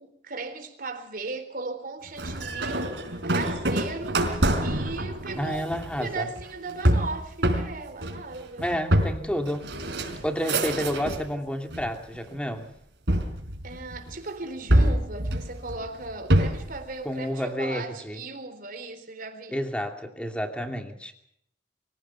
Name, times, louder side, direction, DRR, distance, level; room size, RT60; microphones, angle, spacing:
voice 1, 0.0-2.9 3.2-4.2 4.6-5.7 6.0-8.9 13.6-19.7, right 3 dB, 55° right, 3.9 m, -37 dB
sound 1, 2.2-11.3 11.7-12.4 13.1-14.2 14.7-16.8, right 1 dB, 75° right, 4.4 m, -26 dB
voice 2, 5.4-6.3 8.6-9.7 10.2-12.7 17.0-18.2 19.5-21.1, equal, 5° left, 2.6 m, -30 dB
24.0 x 16.5 x 7.0 m
head